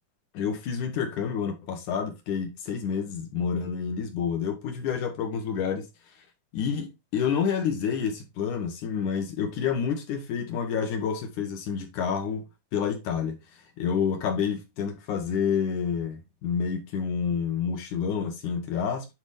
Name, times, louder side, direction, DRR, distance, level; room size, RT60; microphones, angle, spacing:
voice 1, 0.3-5.9 6.5-12.4 12.7-13.4 13.8-19.1, left 7 dB, 65° left, 3.0 m, -29 dB
10.5 x 4.2 x 3.5 m
omnidirectional pair, 3.9 m